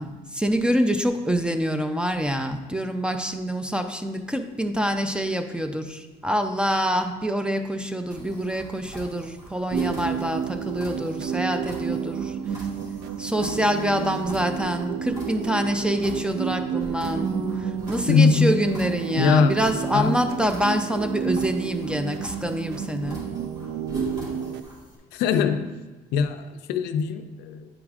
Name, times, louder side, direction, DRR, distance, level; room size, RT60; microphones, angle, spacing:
voice 1, 0.0-12.7 13.2-23.3, equal, 5° right, 7 dB, 0.4 m, -26 dB
sound 1, 8.1-25.0, equal, 25° right, 2.0 m, -43 dB
sound 2, 9.7-24.6, right 8 dB, 75° right, 0.4 m, -31 dB
Bass guitar, 17.2-23.4, right 4 dB, 55° right, 1.5 m, -38 dB
voice 2, 18.1-18.6 19.2-19.5 19.9-20.2 25.1-25.8 26.1-27.7, left 5 dB, 85° left, 9 dB, 0.4 m, -21 dB
8.7 x 4.7 x 2.4 m, 1.2 s
cardioid pair, 110°, 17 cm